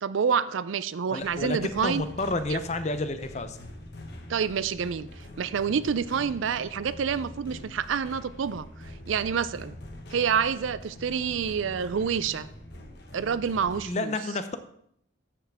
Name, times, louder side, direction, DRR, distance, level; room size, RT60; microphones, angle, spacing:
voice 1, 0.0-2.0 2.5-2.6 4.3-5.1 5.4-8.7 9.1-9.7 10.1-12.5 13.1-14.1, right 7 dB, 75° right, 15 dB, 0.4 m, -28 dB
voice 2, 1.1-3.6 13.8-14.6, left 2 dB, 35° left, 10 dB, 0.6 m, -30 dB
sound 1, 1.2-13.8, left 1 dB, 55° left, 1.3 m, -44 dB
13.5 x 5.9 x 3.5 m, 0.69 s
head